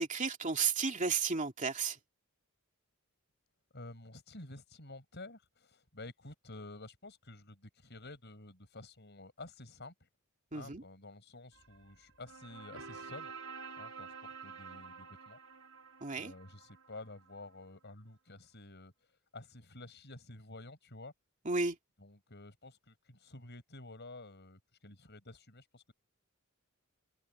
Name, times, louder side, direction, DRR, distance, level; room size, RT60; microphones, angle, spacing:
voice 1, 0.0-2.0 10.5-10.8 16.0-16.3 21.5-21.8, right 5 dB, 35° right, 2.6 m, -33 dB
voice 2, 3.7-10.1 10.5-13.3 13.8-15.4 16.1-21.1 22.0-25.9, left 2 dB, 50° left, 6.8 m, -51 dB
sound 1, 11.5-17.5, right 5 dB, 80° right, 4.7 m, -49 dB
head